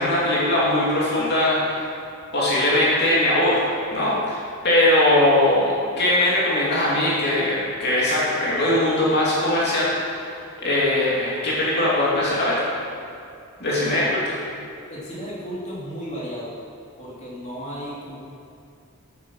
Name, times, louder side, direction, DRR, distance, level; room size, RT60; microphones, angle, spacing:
voice 1, 0.0-1.9 2.3-12.7 13.6-14.0, left 1 dB, 50° left, -7 dB, 2.7 m, -21 dB
voice 2, 13.8-14.1 14.9-16.5 17.0-18.2, equal, 35° left, -7 dB, 2.9 m, -34 dB
11.5 x 8.9 x 6.2 m, 2.6 s
head